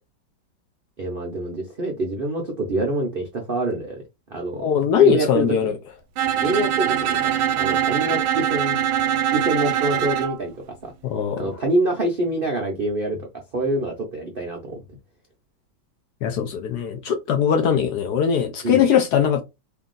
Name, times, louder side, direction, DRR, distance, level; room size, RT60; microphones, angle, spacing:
voice 1, 1.0-4.0 4.3-4.7 5.0-5.7 6.3-8.8 9.3-10.5 10.8-10.9 11.3-13.2 13.5-14.8 18.6-18.8, right 2 dB, 55° right, 0.6 m, -25 dB
voice 2, 4.6-5.7 11.0-11.5 16.2-19.4, left 8 dB, 65° left, 1.1 m, -20 dB
Bowed string instrument, 6.2-10.4, right 10 dB, 85° right, 1.4 m, -22 dB
3.5 x 2.7 x 3.7 m
omnidirectional pair, 2.1 m